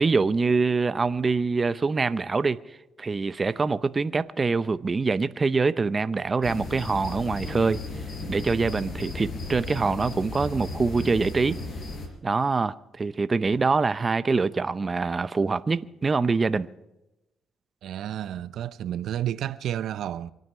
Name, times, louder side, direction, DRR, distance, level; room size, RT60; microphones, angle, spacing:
voice 1, 0.0-7.8 8.3-11.6 12.2-16.7, right 4 dB, 30° right, 0.6 m, -25 dB
sound 1, 6.4-12.1, left 2 dB, 55° left, 4.8 m, -35 dB
voice 2, 17.8-20.3, right 11 dB, 75° right, 0.6 m, -31 dB
25.0 x 9.3 x 5.5 m
cardioid pair, 90°, 0 cm